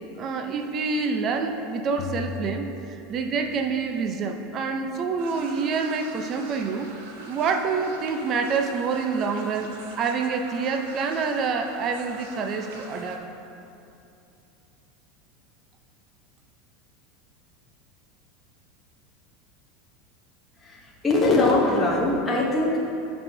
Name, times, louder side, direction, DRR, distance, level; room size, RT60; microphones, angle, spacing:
voice 1, 0.2-6.9 7.3-13.2, right 5 dB, 30° right, 5 dB, 0.6 m, -27 dB
sound 1, 2.0-3.8, left 4 dB, 60° left, 0.5 m, -37 dB
sound 2, 5.2-13.2, right 3 dB, 80° right, 1.1 m, -44 dB
voice 2, 20.6-22.8, left 2 dB, 10° left, -5 dB, 0.8 m, -22 dB
15.0 x 5.5 x 2.7 m, 2.7 s
supercardioid pair, 155°, 0 cm